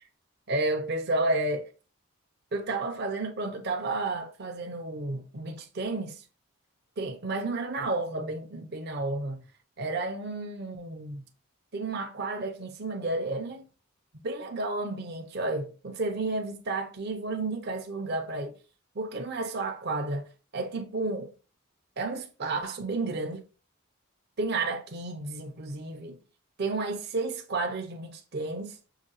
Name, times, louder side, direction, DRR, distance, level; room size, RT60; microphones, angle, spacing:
voice 1, 0.5-1.7 2.5-6.2 7.0-9.4 9.8-11.3 11.7-13.7 14.2-18.5 19.0-20.3 20.5-21.3 22.0-23.4 24.4-26.2 26.6-28.8, right 2 dB, 50° right, 0.6 m, -31 dB
5.7 x 2.6 x 2.9 m
head